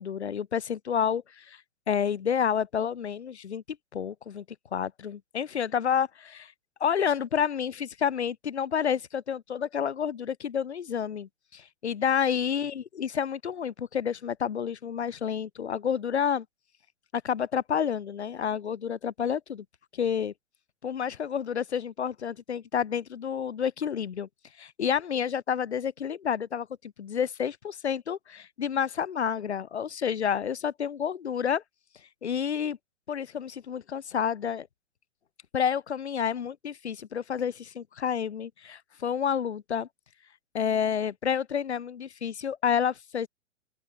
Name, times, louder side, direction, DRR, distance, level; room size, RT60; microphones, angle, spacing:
voice 1, 0.0-1.6 1.9-3.6 3.9-4.4 4.7-6.5 6.8-16.5 17.1-19.6 19.9-20.3 20.8-24.3 24.6-31.6 32.2-32.8 33.1-34.7 35.5-39.9 40.5-43.3, left 8 dB, 60° left, 5.8 m, -29 dB
open air
figure-of-eight pair, 115°, 37 cm